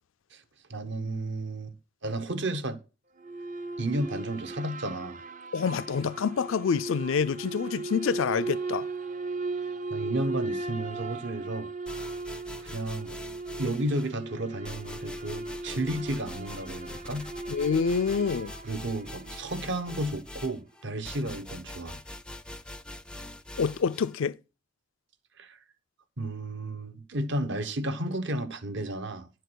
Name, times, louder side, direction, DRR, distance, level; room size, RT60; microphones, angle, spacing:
voice 1, 0.7-1.7 2.0-2.8 3.8-5.2 9.9-11.7 12.6-13.2 13.6-17.3 18.6-22.0 25.4-25.6 26.2-29.3, right 1 dB, 60° right, 1.0 m, -32 dB
sound 1, 3.2-19.8, right 3 dB, 40° right, 0.6 m, -37 dB
voice 2, 5.5-8.9 17.5-18.5 23.6-24.4, left 6 dB, 70° left, 0.4 m, -27 dB
sound 2, 11.9-14.2 14.6-24.1, left 1 dB, 5° left, 0.4 m, -43 dB
10.5 x 4.6 x 6.2 m
head